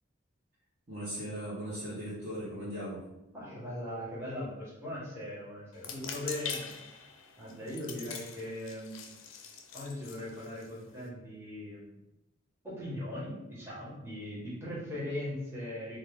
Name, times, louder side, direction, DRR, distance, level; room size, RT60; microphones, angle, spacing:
voice 1, 0.9-3.0, equal, 35° right, -9 dB, 1.0 m, -38 dB
voice 2, 3.3-6.7 7.4-9.2 9.7-11.9 12.6-16.0, left 1 dB, 10° right, -8 dB, 1.3 m, -39 dB
sound 1, 5.7-11.1, left 6 dB, 90° left, 0.5 m, -43 dB
4.5 x 2.3 x 3.5 m, 0.93 s
head